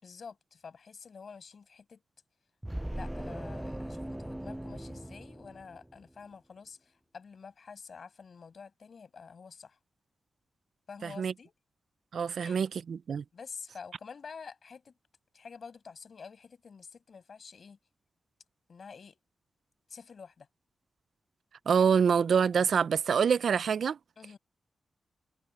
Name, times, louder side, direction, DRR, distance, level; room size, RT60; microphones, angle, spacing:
voice 1, 0.0-2.0 2.9-9.8 10.9-11.5 12.4-12.6 13.3-14.9 15.3-17.8 18.7-19.2 19.9-20.5 24.2-24.4, left 5 dB, 65° left, 6.3 m, -48 dB
sound 1, 2.6-6.1, right 1 dB, 10° right, 0.4 m, -39 dB
voice 2, 11.0-11.3 12.1-13.2 21.7-24.0, right 6 dB, 80° right, 0.4 m, -26 dB
cardioid pair, 60°, 0 cm